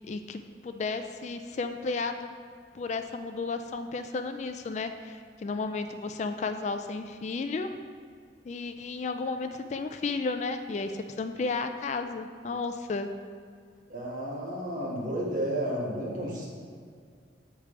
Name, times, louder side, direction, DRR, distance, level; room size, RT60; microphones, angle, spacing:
voice 1, 0.1-2.3 2.7-7.7 8.4-13.1, left 4 dB, 40° left, 8 dB, 0.3 m, -33 dB
voice 2, 13.9-16.5, right 1 dB, 50° right, -4 dB, 1.5 m, -32 dB
8.1 x 3.3 x 4.9 m, 2.1 s
head